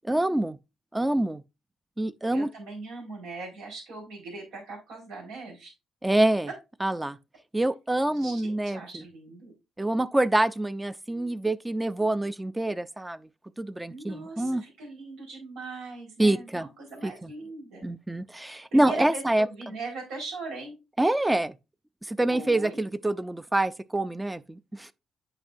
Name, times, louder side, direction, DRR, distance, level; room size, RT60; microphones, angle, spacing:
voice 1, 0.1-0.6 0.9-1.4 2.0-2.5 6.0-6.5 6.8-7.2 7.5-8.8 9.8-13.2 13.6-14.6 16.2-16.7 17.0-17.3 17.8-19.5 21.0-21.5 22.1-24.9, right 1 dB, 10° right, 0.4 m, -26 dB
voice 2, 2.3-5.7 8.1-9.5 13.9-17.9 18.7-20.8 22.3-22.8, right 3 dB, 90° right, 4.4 m, -40 dB
8.9 x 5.3 x 2.6 m
cardioid pair, 90°, 0 cm